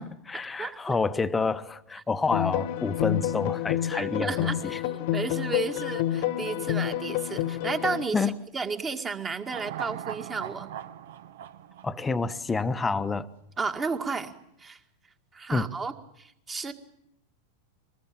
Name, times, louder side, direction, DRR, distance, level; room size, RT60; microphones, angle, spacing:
voice 1, 0.0-4.8 8.1-8.3 11.8-13.3 15.5-15.7, left 4 dB, 15° left, 1.1 m, -28 dB
voice 2, 0.6-1.0 3.9-10.8 13.6-14.3 14.6-14.8 15.3-15.9 16.2-16.7, right 4 dB, 20° right, 2.1 m, -33 dB
sound 1, 2.3-8.1, left 12 dB, 50° left, 1.4 m, -29 dB
sound 2, 9.4-12.8 13.1-13.2, right 10 dB, 55° right, 1.2 m, -40 dB
24.5 x 20.5 x 8.9 m
figure-of-eight pair, 90°, 0 cm